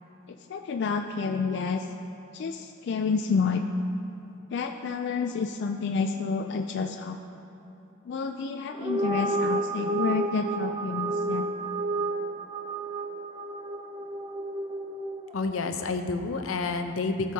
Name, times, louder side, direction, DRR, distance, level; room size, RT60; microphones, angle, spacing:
voice 1, 0.5-1.9 2.3-3.6 4.5-7.2 8.1-11.5, left 5 dB, 60° left, 5 dB, 0.3 m, -29 dB
sound 1, 8.7-15.3, right 2 dB, 20° right, 0.3 m, -31 dB
voice 2, 15.3-17.3, left 3 dB, 85° left, 6 dB, 0.7 m, -29 dB
17.0 x 6.3 x 2.8 m, 2.9 s
head